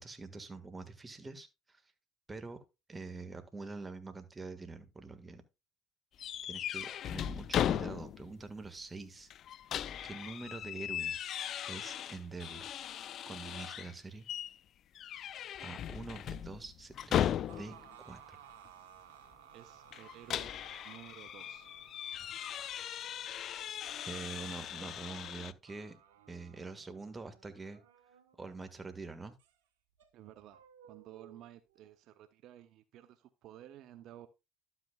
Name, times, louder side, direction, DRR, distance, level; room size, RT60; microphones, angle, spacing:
voice 1, 0.0-1.8 2.3-2.6 2.9-5.4 6.5-9.3 10.0-11.2 11.7-12.7 13.3-14.3 15.6-17.7 18.0-18.4 22.6-22.7 24.1-26.0 26.3-27.8 28.4-29.3, right 3 dB, 20° right, 9 dB, 1.6 m, -45 dB
sound 1, 6.2-8.4 8.7-8.8 9.3-13.9 14.3-14.6 15.0-17.9 19.9-25.5, left 10 dB, 55° left, 0.4 m, -38 dB
sound 2, 17.5-28.9 29.4-29.5 30.0-31.9, right 9 dB, 85° right, 1.1 m, -59 dB
voice 2, 19.5-20.5 20.8-21.7 30.1-34.3, right 12 dB, 65° right, 11 dB, 0.7 m, -54 dB
12.0 x 8.2 x 2.3 m, 0.24 s
hypercardioid pair, 75°, 0 cm